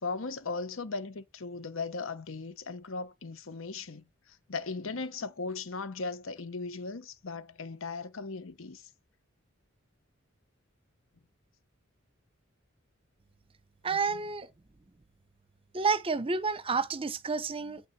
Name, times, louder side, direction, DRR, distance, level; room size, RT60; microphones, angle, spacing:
voice 1, 0.0-8.9 13.9-14.2, left 4 dB, 75° left, 0.9 m, -38 dB
voice 2, 13.8-14.5 15.7-17.8, right 4 dB, 25° right, 0.6 m, -30 dB
9.1 x 3.5 x 5.8 m
head